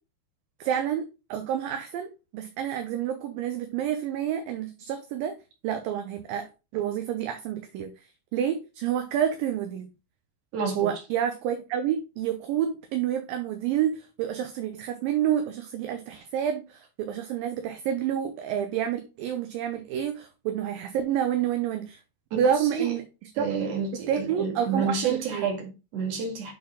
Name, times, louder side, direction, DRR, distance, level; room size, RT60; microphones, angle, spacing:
voice 1, 0.6-5.3 5.6-6.5 6.7-7.9 8.3-9.9 10.8-22.0 22.3-23.5 23.9-25.5, right 9 dB, 75° right, 2.3 m, -29 dB
voice 2, 10.5-10.9 22.7-22.9 23.4-26.5, right 6 dB, 45° right, 2.7 m, -29 dB
8.6 x 4.1 x 3.6 m
omnidirectional pair, 4.4 m